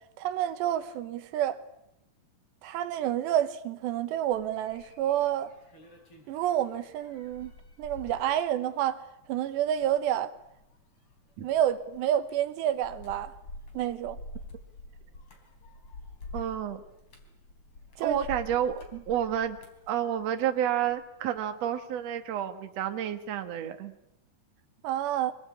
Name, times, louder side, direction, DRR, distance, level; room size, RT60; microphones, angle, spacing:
voice 1, 0.2-1.6 2.6-5.5 6.3-7.5 7.8-9.0 9.3-10.3 11.4-13.3 13.7-14.2 18.0-18.2 24.8-25.3, right 11 dB, 80° right, 3.3 m, -29 dB
sound 1, 4.3-21.0 21.4-21.8, left 2 dB, 30° left, 4.3 m, -48 dB
voice 2, 16.3-16.8 18.0-19.6 19.9-23.9, right 10 dB, 55° right, 1.9 m, -30 dB
25.0 x 19.0 x 8.7 m
omnidirectional pair, 5.0 m